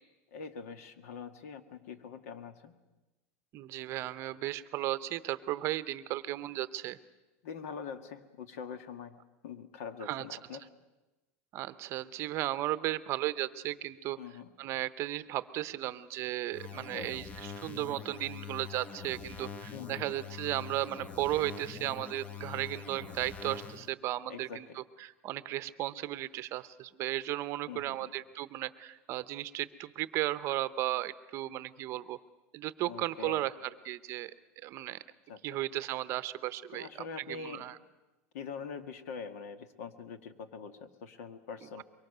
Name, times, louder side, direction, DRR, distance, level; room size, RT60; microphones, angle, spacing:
voice 1, 0.3-2.7 7.4-9.2 9.4-10.7 14.2-14.5 16.7-17.1 19.7-20.1 24.3-24.6 27.7-28.1 32.9-33.4 35.3-35.4 36.7-37.7 38.3-41.8, left 6 dB, 85° left, 9 dB, 1.7 m, -44 dB
voice 2, 3.5-7.0 10.0-10.3 11.5-14.2 14.6-32.2 32.5-34.3 34.6-35.0 35.4-37.8 41.8-41.9, right 15 dB, 35° right, 14 dB, 0.7 m, -35 dB
sound 1, 16.5-23.9, left 6 dB, 20° left, 0.7 m, -44 dB
23.5 x 23.0 x 6.7 m, 1.1 s
supercardioid pair, 160°, 8 cm